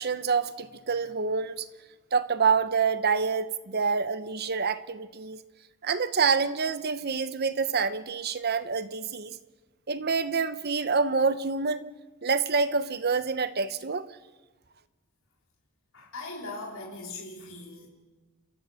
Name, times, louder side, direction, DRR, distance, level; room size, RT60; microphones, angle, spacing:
voice 1, 0.0-1.7 2.1-5.4 5.8-9.4 9.9-11.9 12.2-14.1, right 5 dB, 45° right, 0.9 m, -27 dB
voice 2, 15.9-17.9, left 2 dB, 60° left, 4.3 m, -40 dB
30.0 x 13.5 x 7.1 m
head